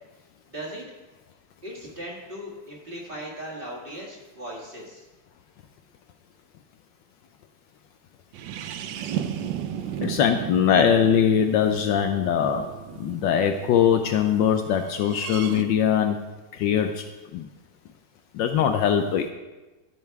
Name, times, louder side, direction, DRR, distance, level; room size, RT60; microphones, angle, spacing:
voice 1, 0.5-0.8 1.6-5.1, equal, 30° right, -3 dB, 1.8 m, -38 dB
sound 1, 8.3-14.0 14.9-15.6, right 9 dB, 75° right, 1.2 m, -35 dB
voice 2, 10.0-12.7 13.0-16.2 16.5-17.0 17.3-17.5 18.3-19.3, left 8 dB, 75° left, 6 dB, 1.1 m, -21 dB
13.0 x 5.4 x 4.6 m, 1.1 s
omnidirectional pair, 2.2 m